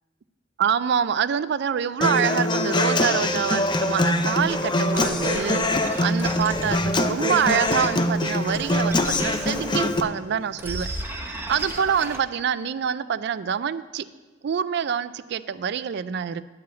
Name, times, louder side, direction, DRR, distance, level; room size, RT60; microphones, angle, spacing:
voice 1, 0.6-10.9 11.5-14.1 14.4-16.4, right 7 dB, 60° right, 15 dB, 0.4 m, -26 dB
Human voice / Acoustic guitar, 2.0-10.0, left 2 dB, 25° left, 0.5 m, -23 dB
sound 1, 4.3-10.1 10.5-12.2, right 1 dB, 10° right, 0.9 m, -35 dB
10.5 x 4.8 x 8.1 m, 1.3 s
head